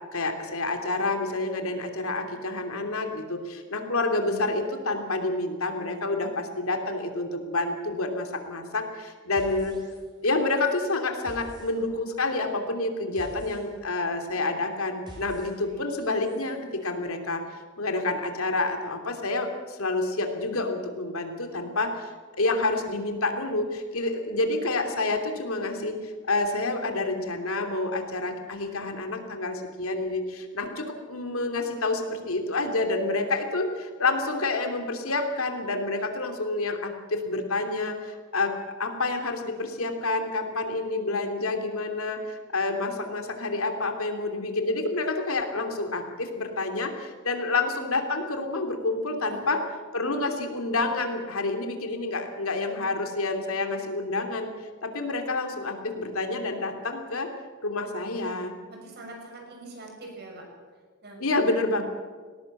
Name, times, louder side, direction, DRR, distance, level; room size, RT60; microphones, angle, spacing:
voice 1, 0.0-9.8 10.2-17.4 17.8-38.5 38.8-49.6 49.9-54.5 54.8-57.3 57.6-58.5 61.2-61.8, left 2 dB, 80° left, 5 dB, 2.9 m, -28 dB
sound 1, 9.3-10.3 10.5-16.5, equal, 20° right, 6.1 m, -49 dB
voice 2, 58.7-60.5 61.0-61.2, right 2 dB, 50° right, 2 dB, 6.5 m, -43 dB
19.5 x 18.5 x 7.8 m, 1.5 s
head